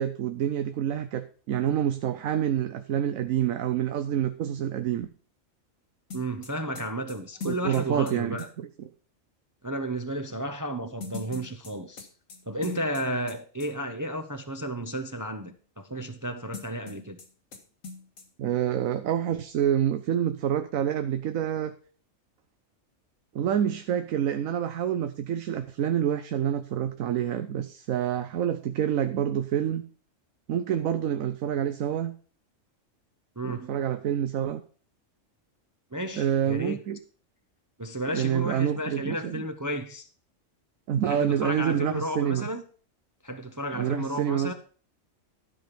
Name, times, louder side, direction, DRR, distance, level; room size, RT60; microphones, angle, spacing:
voice 1, 0.0-5.1 7.5-8.9 18.4-21.7 23.3-29.8 30.5-32.1 33.4-34.6 36.2-37.0 38.1-39.4 40.9-42.5 43.7-44.5, right 9 dB, 85° right, 1.1 m, -27 dB
sound 1, 6.1-8.5 11.0-13.4 13.6-13.7 16.5-17.3 17.5-17.6 17.8-18.2, left 3 dB, 85° left, 2.0 m, -40 dB
voice 2, 6.1-8.5 9.6-12.1 12.5-17.2 33.4-33.7 35.9-36.8 37.8-40.1 41.0-42.6 43.2-44.5, equal, 20° right, 0.5 m, -33 dB
12.5 x 5.2 x 5.9 m
omnidirectional pair, 1.4 m